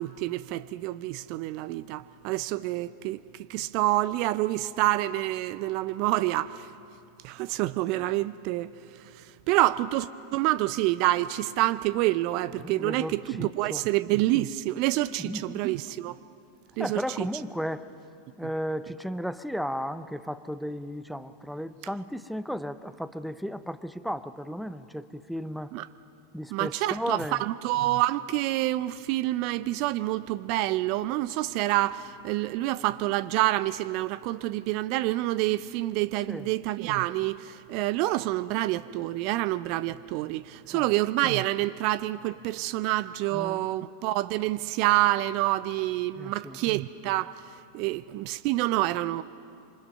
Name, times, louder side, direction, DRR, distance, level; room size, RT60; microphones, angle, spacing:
voice 1, 0.0-3.2 3.5-6.7 7.2-8.7 9.5-16.1 16.8-17.3 25.7-25.9 26.5-47.3 47.7-49.2, right 16 dB, 50° right, 0.5 m, -27 dB
voice 2, 12.6-13.9 15.2-15.6 16.8-17.9 18.4-25.7 26.3-27.4 36.3-36.5 40.7-40.9 43.3-43.6 46.2-46.6, equal, ahead, 0.7 m, -34 dB
26.5 x 25.0 x 5.4 m
figure-of-eight pair, 90°, 0 cm